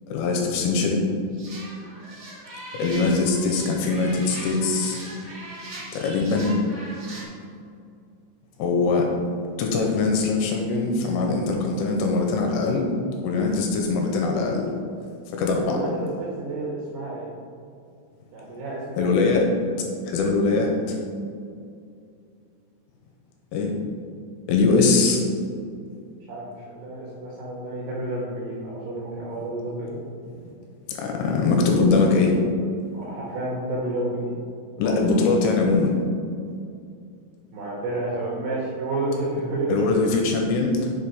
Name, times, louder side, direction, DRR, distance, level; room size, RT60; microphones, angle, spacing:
voice 1, 0.1-1.0 2.7-5.0 5.9-6.5 8.6-9.1 9.6-12.9 13.2-14.7 15.3-15.8 19.0-19.5 20.1-21.0 23.5-23.7 24.5-25.2 30.9-32.4 34.8-36.0 39.7-40.9, left 3 dB, 85° left, 1 dB, 3.1 m, -22 dB
sound 1, 1.3-7.2, right 1 dB, 90° right, 1.2 m, -40 dB
voice 2, 15.5-17.3 18.3-19.1 20.6-20.8 26.3-30.0 32.9-34.4 34.8-35.2 37.5-39.7, right 2 dB, 70° right, -5 dB, 2.6 m, -30 dB
7.3 x 4.8 x 5.2 m, 2.4 s
omnidirectional pair, 6.0 m